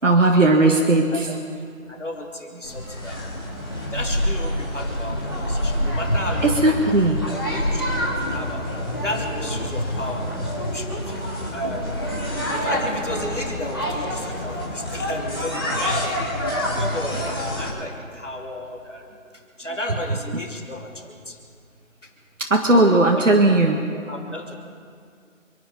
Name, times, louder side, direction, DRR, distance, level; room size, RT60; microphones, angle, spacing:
voice 1, 0.0-1.3 6.4-7.2 20.3-20.4 22.5-23.8, right 2 dB, 65° right, 1 dB, 1.7 m, -17 dB
voice 2, 0.6-1.4 1.9-3.4 3.9-6.9 7.3-8.6 9.0-10.3 10.7-11.9 12.5-16.2 16.7-19.0 19.6-21.4 23.1-23.2 23.7-24.6, left 1 dB, 60° left, 0 dB, 3.2 m, -33 dB
sound 1, 2.6-17.7, equal, 15° left, 2.0 m, -27 dB
27.5 x 9.4 x 5.4 m, 2.2 s
figure-of-eight pair, 180°, 41 cm